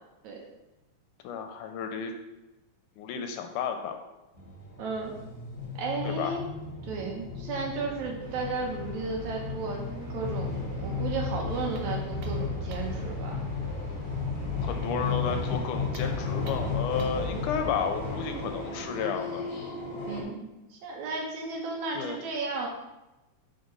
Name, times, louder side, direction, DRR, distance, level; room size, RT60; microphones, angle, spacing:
voice 1, 1.2-2.1 3.0-4.0 6.0-6.4 14.6-19.4 22.0-22.2, left 6 dB, 80° left, 5 dB, 2.0 m, -32 dB
sound 1, 4.3-20.2, left 4 dB, 35° left, 1.6 m, -34 dB
voice 2, 4.8-5.1 5.8-6.5 6.8-9.8 10.1-13.3 14.9-15.0 20.1-22.7, right 4 dB, 70° right, 0 dB, 2.1 m, -34 dB
sound 2, 8.2-18.9, left 1 dB, 10° left, 1.2 m, -49 dB
sound 3, 11.7-13.0 15.8-17.3, right 4 dB, 85° right, 1.4 m, -50 dB
5.0 x 4.8 x 5.3 m, 1.0 s
omnidirectional pair, 3.8 m